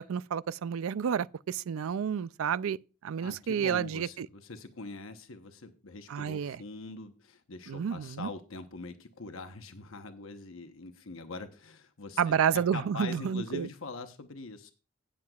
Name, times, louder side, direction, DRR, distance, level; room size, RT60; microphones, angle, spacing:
voice 1, 0.0-2.8 3.0-4.3 6.1-6.6 7.7-8.3 12.2-13.7, right 7 dB, 70° right, 0.4 m, -30 dB
voice 2, 3.2-14.7, left 3 dB, 65° left, 1.0 m, -43 dB
17.0 x 7.6 x 2.3 m
head